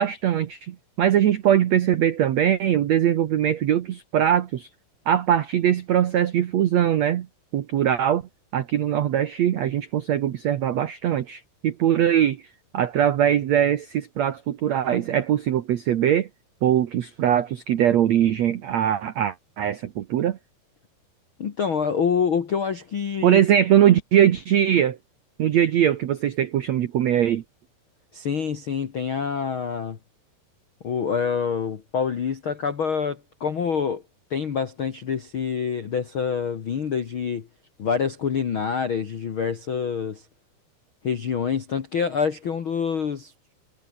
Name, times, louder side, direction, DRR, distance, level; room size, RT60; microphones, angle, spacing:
voice 1, 0.0-4.7 5.1-7.3 7.5-8.2 8.5-12.4 12.7-16.3 16.6-20.4 23.2-25.0 25.4-27.4, right 10 dB, 85° right, 1.5 m, -21 dB
voice 2, 21.4-23.4 28.1-30.0 30.8-34.0 34.3-37.5 37.8-40.2 41.0-43.3, left 6 dB, 65° left, 1.2 m, -26 dB
omnidirectional pair, 4.9 m